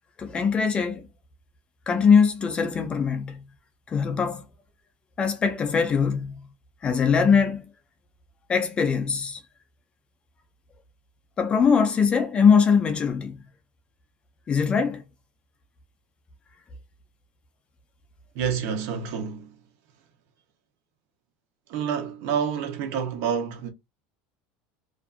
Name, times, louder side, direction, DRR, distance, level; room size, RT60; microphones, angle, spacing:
voice 1, 0.2-1.1 1.9-3.4 3.9-4.4 5.2-6.5 6.8-7.7 8.5-9.4 11.4-13.4 14.5-15.0, left 6 dB, 20° left, 0.4 m, -21 dB
voice 2, 18.3-19.5 21.7-23.7, right 7 dB, 60° right, 0.8 m, -28 dB
2.5 x 2.4 x 2.4 m
cardioid pair, 150°, 5 cm